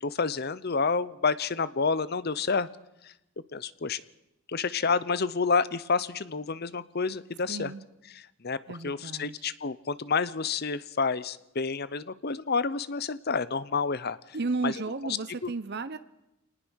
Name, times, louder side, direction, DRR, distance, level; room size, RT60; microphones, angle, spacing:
voice 1, 0.0-2.7 3.0-3.1 3.5-4.0 4.5-7.7 8.4-8.6 8.8-14.4 14.6-14.7 15.4-15.5, left 4 dB, 45° left, 16 dB, 0.8 m, -29 dB
voice 2, 7.5-7.8 8.7-9.3 14.3-16.0, right 3 dB, 50° right, 12 dB, 0.8 m, -33 dB
25.0 x 19.0 x 6.4 m, 0.89 s
head